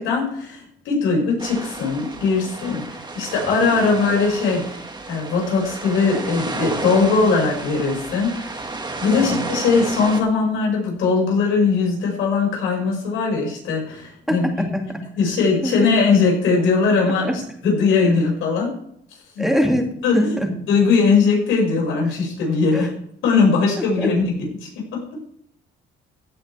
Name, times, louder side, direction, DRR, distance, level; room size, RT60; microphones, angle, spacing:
voice 1, 0.0-4.6 5.1-8.7 9.0-14.5 15.2-18.7 19.4-19.5 20.0-20.4 20.7-22.9 23.2-25.0, left 4 dB, 90° left, -2 dB, 6.0 m, -20 dB
sound 1, 1.4-10.2, right 3 dB, 20° right, 1.9 m, -31 dB
voice 2, 14.3-15.0 15.6-15.9 17.2-17.3 18.0-18.1 19.4-20.5 22.7-22.9 24.0-24.1, equal, ahead, 1 dB, 2.6 m, -23 dB
16.0 x 9.4 x 3.5 m, 0.69 s
cardioid pair, 90°, 20 cm